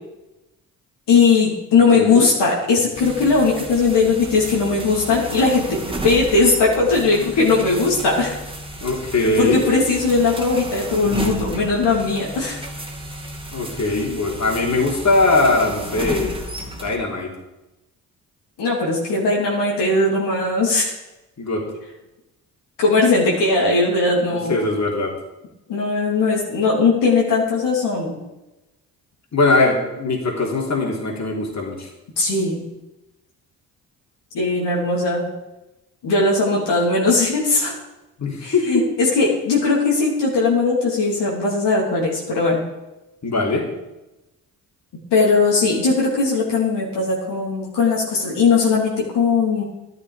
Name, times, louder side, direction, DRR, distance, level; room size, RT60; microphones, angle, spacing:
voice 1, 1.1-8.4 9.4-12.6 18.6-20.9 22.8-24.6 25.7-28.2 32.2-32.7 34.3-35.3 36.0-37.7 38.4-42.6 45.1-49.6, left 3 dB, 65° left, -3 dB, 3.2 m, -19 dB
voice 2, 1.9-2.3 8.8-9.7 13.5-16.4 16.6-17.3 21.4-21.6 24.5-25.1 29.3-31.9 38.2-38.8 43.2-43.7, left 2 dB, 35° left, -1 dB, 3.4 m, -20 dB
sound 1, 2.9-17.0, right 1 dB, 10° right, 2.3 m, -32 dB
12.0 x 10.5 x 5.0 m, 1.0 s
hypercardioid pair, 40°, 45 cm